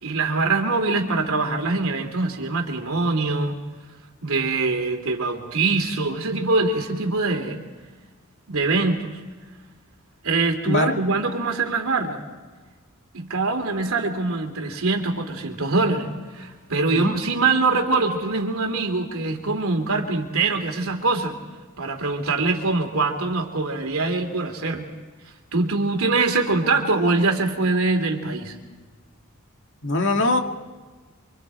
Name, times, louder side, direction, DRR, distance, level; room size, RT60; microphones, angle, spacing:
voice 1, 0.0-3.6 4.2-7.6 8.5-9.1 10.2-12.2 13.1-21.4 21.8-24.9 25.5-28.5, right 3 dB, 75° right, 4 dB, 2.8 m, -23 dB
voice 2, 10.7-11.0 16.9-17.1 29.8-30.4, left 2 dB, 60° left, 4 dB, 2.1 m, -21 dB
28.5 x 24.5 x 4.4 m, 1.4 s
head